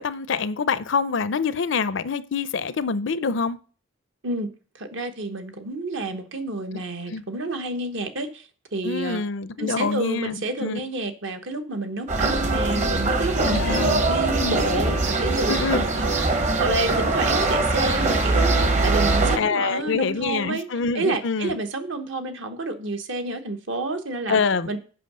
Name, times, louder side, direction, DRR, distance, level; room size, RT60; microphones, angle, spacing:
voice 1, 0.0-3.6 7.1-7.2 8.8-10.8 13.4-14.0 14.4-14.6 15.5-15.9 19.3-21.6 24.3-24.8, left 5 dB, 60° left, 0.5 m, -26 dB
voice 2, 4.8-8.4 8.7-9.2 9.6-15.5 15.9-20.7 20.9-24.8, right 2 dB, 60° right, 1.0 m, -29 dB
sound 1, 12.1-19.4, right 2 dB, 35° right, 0.9 m, -22 dB
7.7 x 5.4 x 6.7 m
head